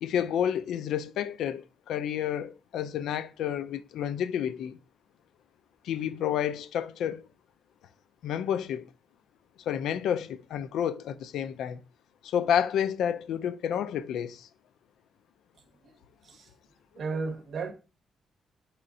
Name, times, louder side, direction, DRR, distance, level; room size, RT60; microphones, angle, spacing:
voice 1, 0.0-4.8 5.8-7.3 8.2-8.9 9.7-11.8 12.2-14.5, left 9 dB, 85° left, 0.3 m, -30 dB
voice 2, 17.0-17.7, right 4 dB, 55° right, 0.7 m, -33 dB
4.8 x 4.2 x 2.6 m
cardioid pair, 150°, 0 cm